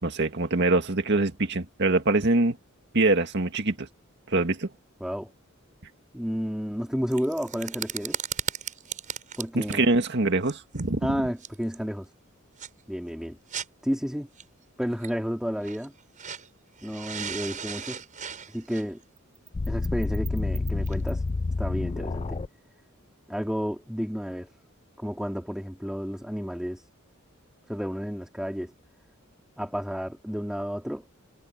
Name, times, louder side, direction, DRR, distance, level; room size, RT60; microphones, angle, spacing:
voice 1, 0.0-2.6 2.9-3.9 4.3-4.7 9.5-11.2, right 2 dB, 55° right, 2.0 m, -24 dB
voice 2, 5.0-5.3 6.1-8.2 9.4-9.9 11.0-12.1 12.9-13.4 13.8-14.3 14.8-15.9 16.8-18.0 18.5-19.0 19.7-21.2 21.6-22.4 23.3-24.5 25.0-26.8 27.7-28.7 29.6-31.1, equal, 5° right, 3.6 m, -31 dB
sound 1, 7.1-10.1 10.5-10.8 11.4-11.8 12.6-12.7 13.5-13.7 14.4-14.5 15.0-15.1 15.6-16.5 16.8-21.3, right 8 dB, 40° right, 6.6 m, -36 dB
sound 2, 19.5-22.5, left 3 dB, 30° left, 0.4 m, -28 dB
head